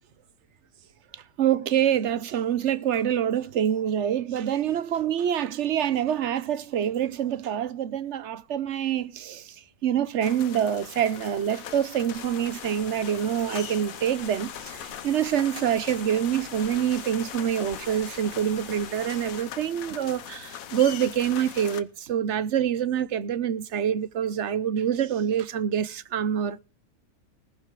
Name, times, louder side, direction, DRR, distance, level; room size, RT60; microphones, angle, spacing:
voice 1, 1.1-9.5 9.8-26.6, right 9 dB, 60° right, 0.9 m, -26 dB
sound 1, 10.2-21.8, left 9 dB, 70° left, 1.3 m, -41 dB
sound 2, 12.1-19.4, left 6 dB, 40° left, 1.0 m, -44 dB
20.0 x 7.0 x 4.6 m
omnidirectional pair, 1.6 m